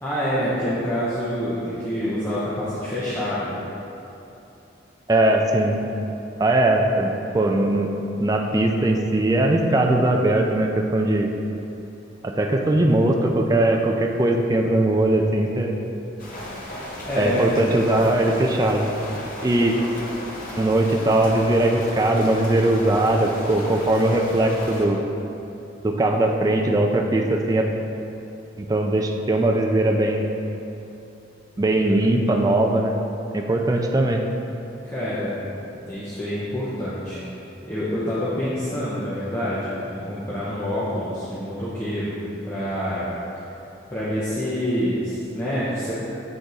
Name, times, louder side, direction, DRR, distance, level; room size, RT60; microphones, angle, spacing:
voice 1, 0.0-3.5 16.6-17.5 34.8-35.4 35.8-37.2 37.7-42.1 42.4-43.1 43.9-45.9, equal, 15° left, -11 dB, 0.7 m, -27 dB
voice 2, 5.1-5.8 6.4-7.9 8.2-11.3 12.2-15.7 17.2-18.9 19.4-19.8 20.6-25.0 25.8-27.7 28.6-30.2 31.6-32.9 33.3-34.2, right 1 dB, 20° right, 2 dB, 0.3 m, -20 dB
sound 1, 16.2-24.9, left 1 dB, 45° left, 0.8 m, -35 dB
7.7 x 3.5 x 4.0 m, 2.9 s
head